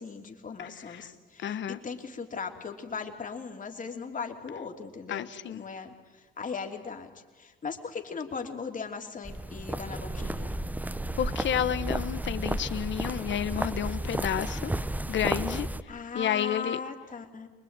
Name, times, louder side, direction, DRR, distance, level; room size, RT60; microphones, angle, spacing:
voice 1, 0.0-7.1 7.4-10.5 15.9-17.5, left 5 dB, 40° left, 4 dB, 3.2 m, -38 dB
voice 2, 0.6-1.1 1.4-1.8 5.1-5.6 11.2-14.7 15.1-15.7 16.1-16.8, left 10 dB, 70° left, 13 dB, 1.3 m, -31 dB
sound 1, 9.2-15.8, right 1 dB, 10° right, 0.9 m, -33 dB
24.5 x 21.5 x 8.9 m, 1.3 s
cardioid pair, 90°, 20 cm